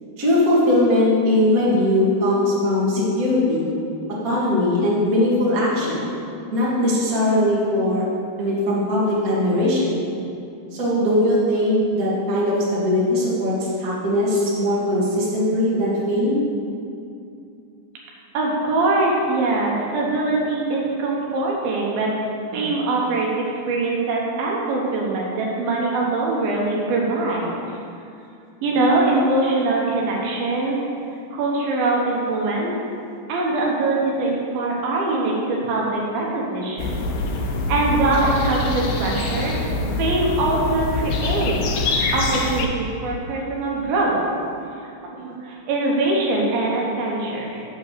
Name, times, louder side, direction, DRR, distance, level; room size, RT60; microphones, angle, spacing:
voice 1, 0.2-3.7 4.2-6.0 6.5-8.0 8.4-10.0 10.7-16.4, left 1 dB, 35° right, -7 dB, 1.4 m, -20 dB
voice 2, 18.3-22.1 22.5-27.8 28.6-30.8 31.3-32.7 33.3-37.0 37.4-39.6 40.0-41.6 42.1-44.2 45.0-47.6, right 2 dB, 70° right, -3 dB, 2.7 m, -22 dB
sound 1, 36.8-42.7, left 3 dB, 80° left, 2.0 m, -24 dB
7.9 x 5.7 x 6.7 m, 2.5 s
omnidirectional pair, 4.9 m